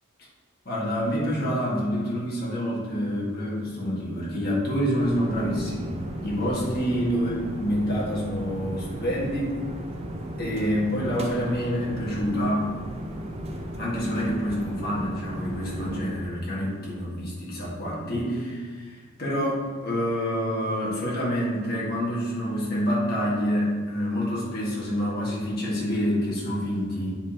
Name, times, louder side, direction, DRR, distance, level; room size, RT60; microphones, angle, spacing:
voice 1, 0.7-7.3 7.6-9.6 10.4-12.7 13.8-27.2, equal, 45° left, -6 dB, 1.7 m, -27 dB
sound 1, 5.0-16.0, right 1 dB, 30° right, 0.6 m, -36 dB
8.4 x 5.0 x 2.9 m, 1.5 s
head